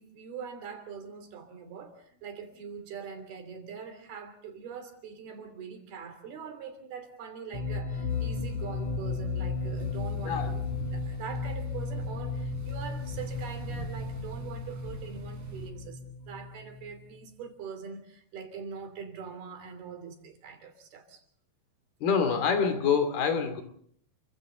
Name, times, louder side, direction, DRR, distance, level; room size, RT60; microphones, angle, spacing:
voice 1, 0.0-16.0 16.3-21.2, right 6 dB, 85° right, 4.9 m, -43 dB
sound 1, 7.5-17.2, left 4 dB, 60° left, 3.0 m, -34 dB
sound 2, 8.1-15.7, right 4 dB, 50° right, 5.0 m, -45 dB
voice 2, 22.0-23.6, left 6 dB, 80° left, 4.7 m, -26 dB
29.5 x 24.0 x 3.9 m
omnidirectional pair, 4.3 m